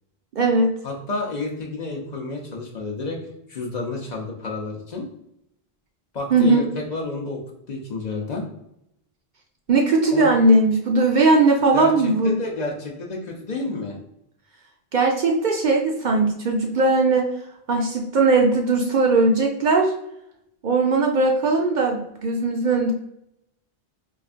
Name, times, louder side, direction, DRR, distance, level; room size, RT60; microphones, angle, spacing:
voice 1, 0.3-0.7 6.3-6.6 9.7-12.4 14.9-17.3 17.7-19.9 20.6-22.9, right 3 dB, 60° right, 1 dB, 0.6 m, -19 dB
voice 2, 0.8-3.2 3.5-5.1 6.1-7.4 7.7-8.4 10.1-10.3 11.7-14.0, left 3 dB, 50° left, -1 dB, 0.6 m, -30 dB
4.4 x 2.4 x 2.4 m, 0.79 s
omnidirectional pair, 1.0 m